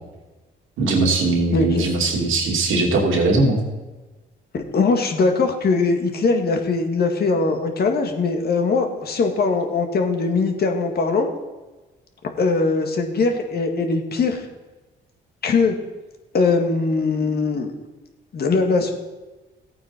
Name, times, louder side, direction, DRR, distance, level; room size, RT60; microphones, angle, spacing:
voice 1, 0.8-3.6, right 3 dB, 85° right, 0 dB, 2.7 m, -20 dB
voice 2, 1.5-1.9 4.5-11.3 12.4-14.5 15.4-15.8 16.3-17.7 18.3-18.9, left 4 dB, 55° left, 4 dB, 1.8 m, -21 dB
15.0 x 8.9 x 4.4 m, 1.2 s
cardioid pair, 90°, 20 cm